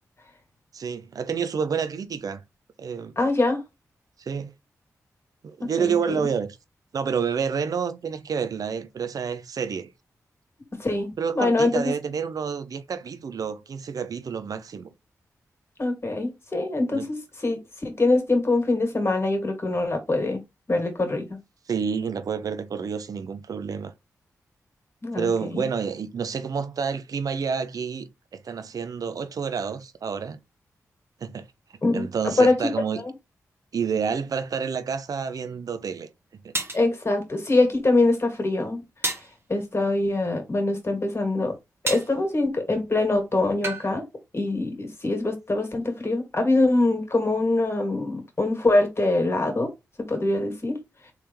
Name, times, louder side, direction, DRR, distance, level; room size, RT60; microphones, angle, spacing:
voice 1, 0.7-2.4 2.8-3.1 4.2-4.5 5.4-6.6 6.9-9.9 11.2-14.9 16.9-17.0 21.7-23.9 25.1-30.4 31.2-31.4 31.9-33.0 33.7-36.1 36.4-36.5, right 6 dB, 70° right, 0.6 m, -29 dB
voice 2, 3.2-3.6 5.6-6.3 10.8-11.9 15.8-20.4 20.7-21.4 25.0-25.6 31.8-32.1 32.4-32.5 36.7-38.8 39.5-41.5 41.8-44.0 44.3-49.7 50.0-50.8, left 2 dB, 40° left, 2.0 m, -24 dB
sound 1, 36.5-36.9 39.0-39.3 41.9-42.2 43.6-43.9, right 2 dB, 40° right, 1.2 m, -29 dB
3.5 x 3.4 x 3.0 m
cardioid pair, 45°, 6 cm